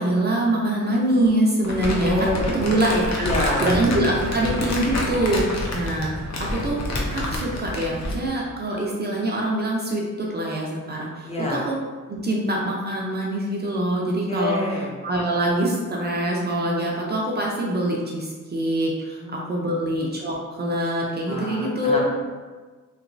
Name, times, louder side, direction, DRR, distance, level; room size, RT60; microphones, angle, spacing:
voice 1, 0.0-2.3 2.5-3.3 3.6-6.8 7.1-11.7 12.1-14.6 15.0-22.0, right 1 dB, 35° right, -3 dB, 0.4 m, -24 dB
Crumpling crinkling, 1.6-8.3, left 1 dB, 60° left, 0.6 m, -28 dB
voice 2, 1.9-2.8 3.2-3.7 11.2-11.6 14.0-14.9 19.1-19.8 21.3-22.0, left 1 dB, 20° left, -4 dB, 0.5 m, -28 dB
3.0 x 2.9 x 2.5 m, 1.4 s
wide cardioid pair, 145°, 31 cm